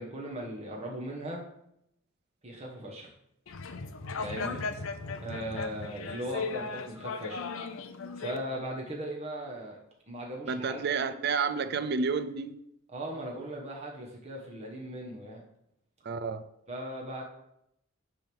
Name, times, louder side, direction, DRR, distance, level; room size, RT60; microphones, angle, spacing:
voice 1, 0.0-1.5 2.4-3.1 4.1-4.6 5.2-7.5 8.2-9.8 10.1-11.0 12.9-15.4 16.7-17.2, equal, 30° right, 1.2 m, -38 dB
sound 1, 3.5-8.4, left 4 dB, 70° left, 0.6 m, -37 dB
voice 2, 10.5-12.6 16.0-16.4, right 5 dB, 50° right, 0.5 m, -30 dB
8.9 x 3.5 x 6.2 m
head